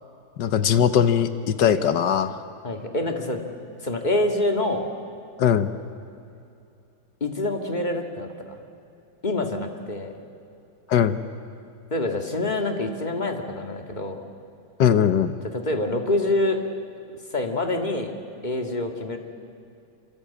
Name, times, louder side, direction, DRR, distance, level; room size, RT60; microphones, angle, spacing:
voice 1, 0.4-2.3 5.4-5.7 10.9-11.2 14.8-15.3, left 8 dB, 65° left, 11 dB, 1.6 m, -20 dB
voice 2, 2.6-3.4 3.8-4.9 7.2-8.6 9.2-10.1 11.9-14.2 15.5-16.6 17.3-18.1 18.4-19.2, left 2 dB, 25° left, 4 dB, 2.1 m, -26 dB
26.0 x 25.0 x 8.5 m, 2.6 s
omnidirectional pair, 2.1 m